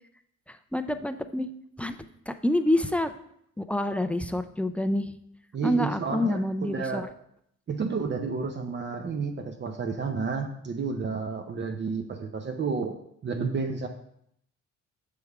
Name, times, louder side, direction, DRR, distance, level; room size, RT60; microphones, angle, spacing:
voice 1, 0.5-1.5 1.8-3.1 3.6-5.1 5.6-7.1, left 1 dB, 5° left, 9 dB, 0.3 m, -27 dB
voice 2, 5.5-7.1 7.7-13.0 13.2-13.9, right 5 dB, 35° right, 4 dB, 0.6 m, -31 dB
6.7 x 3.5 x 4.7 m, 0.72 s
cardioid pair, 90°, 30 cm